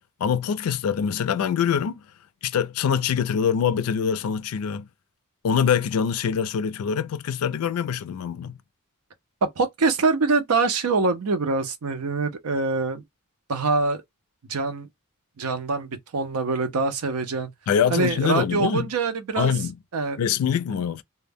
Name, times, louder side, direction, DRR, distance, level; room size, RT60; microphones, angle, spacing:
voice 1, 0.2-2.0 2.4-4.9 5.4-8.6 17.7-18.9 19.4-19.8 20.2-21.0, left 7 dB, 75° left, 0.4 m, -24 dB
voice 2, 9.4-13.0 13.5-14.0 14.5-14.9 15.4-17.5 17.9-19.5 19.9-20.2, right 3 dB, 85° right, 0.6 m, -24 dB
2.2 x 2.1 x 3.3 m
head